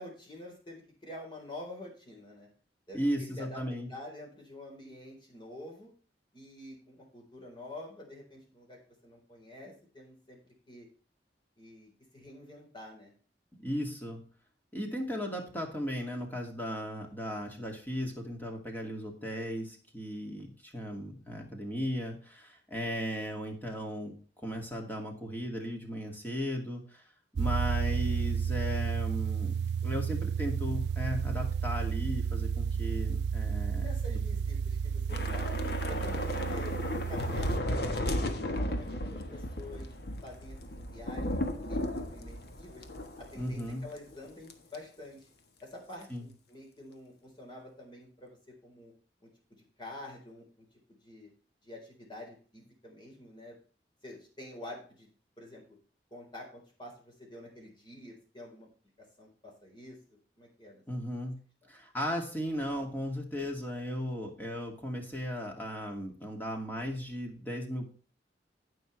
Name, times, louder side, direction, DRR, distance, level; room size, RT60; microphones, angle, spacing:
voice 1, 0.0-2.5 2.9-3.6 3.9-5.9 6.3-10.4 10.7-10.9 11.6-13.1 33.5-35.5 35.9-36.7 37.1-37.9 38.5-40.0 40.2-42.8 43.2-45.3 45.6-48.4 48.6-48.9 49.2-49.3 49.8-50.7 51.0-51.3 51.6-53.6 54.0-55.1 55.4-55.8 56.1-58.7 59.2-60.8, left 1 dB, 25° left, -1 dB, 4.0 m, -48 dB
voice 2, 2.9-3.9 13.6-14.2 14.7-24.2 24.4-27.0 27.4-29.6 29.8-33.9 43.4-43.8 46.1-46.3 60.9-61.4 61.7-67.9, equal, 10° left, 1 dB, 2.3 m, -36 dB
sound 1, 27.4-37.6, right 6 dB, 70° right, 0.3 m, -32 dB
Thunder / Rain, 35.1-43.7 44.0-44.1 44.5-44.8, left 1 dB, 60° left, 1.3 m, -34 dB
16.5 x 5.7 x 3.3 m, 0.41 s
head